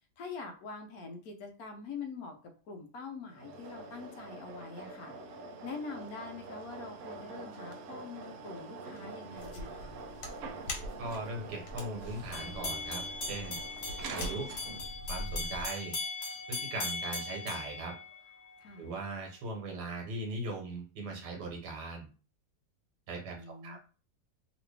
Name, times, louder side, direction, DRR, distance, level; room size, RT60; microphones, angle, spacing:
voice 1, 0.2-2.4 2.7-5.2 5.6-10.0 18.6-18.9 23.4-23.8, left 4 dB, 70° left, 4 dB, 1.2 m, -44 dB
sound 1, 3.3-15.0, right 3 dB, 70° right, 0.8 m, -45 dB
sound 2, 9.4-15.7, left 1 dB, 90° left, 1.6 m, -43 dB
voice 2, 11.0-13.0 13.3-13.6 14.1-14.5 15.1-15.9 16.5-17.9 18.8-22.1 23.1-23.4 23.6-23.8, right 2 dB, 90° right, 0 dB, 1.6 m, -39 dB
sound 3, 12.3-18.6, left 3 dB, 45° left, 1.1 m, -39 dB
3.0 x 2.9 x 3.2 m, 0.36 s
omnidirectional pair, 1.7 m